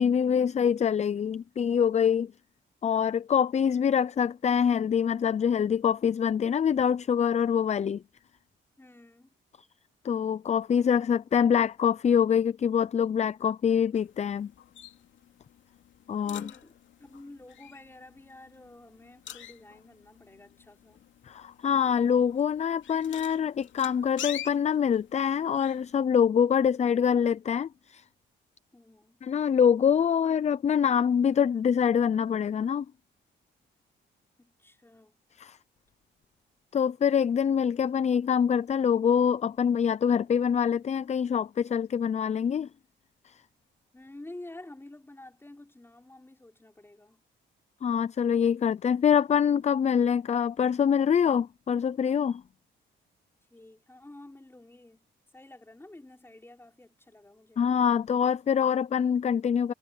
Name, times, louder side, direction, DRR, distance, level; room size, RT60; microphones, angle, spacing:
voice 1, 0.0-2.3 2.8-8.0 10.0-14.5 16.1-16.5 21.3-28.0 29.2-32.9 35.4-35.6 36.7-42.7 43.3-43.4 47.8-52.4 57.6-59.7, left 7 dB, 35° left, 0.5 m, -25 dB
voice 2, 8.8-9.3 16.2-21.0 28.7-29.2 34.4-35.2 43.9-47.2 53.5-55.1 55.3-57.6, left 2 dB, 10° left, 5.6 m, -50 dB
sound 1, 13.9-25.9, left 11 dB, 75° left, 2.5 m, -46 dB
cardioid pair, 90°, 20 cm